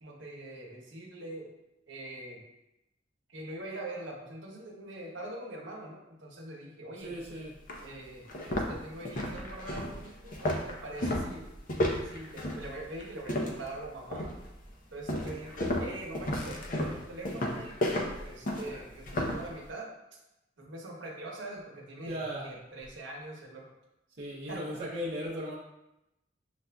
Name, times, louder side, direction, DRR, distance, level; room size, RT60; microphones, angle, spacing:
voice 1, 0.0-1.5 1.9-2.4 3.3-7.1 7.8-11.5 12.0-14.3 14.9-19.9 20.6-23.7 24.5-24.6, right 1 dB, 85° right, -1 dB, 1.0 m, -43 dB
voice 2, 7.0-7.5 22.0-22.5 24.2-25.6, equal, 65° right, -6 dB, 0.6 m, -37 dB
sound 1, 7.1-7.2 7.7-7.8 8.2-13.7 14.1-14.5 15.1-19.5, left 1 dB, 45° left, 0.6 m, -32 dB
7.1 x 2.5 x 2.2 m, 0.92 s
head